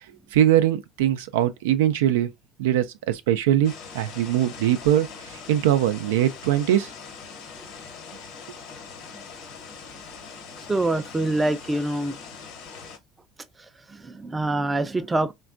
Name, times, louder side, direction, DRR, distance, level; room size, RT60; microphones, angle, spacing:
voice 1, 0.3-2.3 2.6-5.1 5.5-6.9, right 12 dB, 90° right, 0.3 m, -21 dB
sound 1, 3.6-13.0, left 5 dB, 70° left, 1.0 m, -42 dB
voice 2, 10.7-12.2 13.6-15.3, right 2 dB, 15° right, 0.4 m, -26 dB
3.4 x 2.2 x 2.4 m
supercardioid pair, 90°, 0 cm